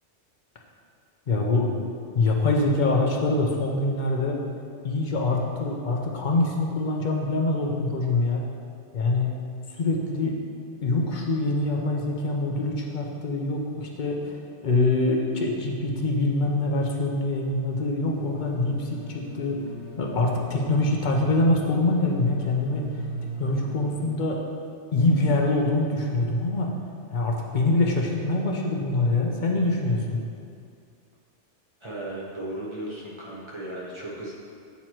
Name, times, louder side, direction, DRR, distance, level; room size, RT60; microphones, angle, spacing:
voice 1, 1.3-1.7 2.1-4.4 4.8-8.5 8.9-9.3 9.7-10.4 10.8-14.4 14.6-19.6 20.0-22.9 23.4-24.4 24.9-26.7 27.1-30.2, left 2 dB, 50° left, 0 dB, 0.7 m, -24 dB
sound 1, 18.1-24.1, right 1 dB, 30° left, 1.3 m, -39 dB
voice 2, 31.8-34.3, right 1 dB, 30° right, -5 dB, 0.7 m, -35 dB
8.3 x 3.0 x 4.4 m, 2.4 s
omnidirectional pair, 1.2 m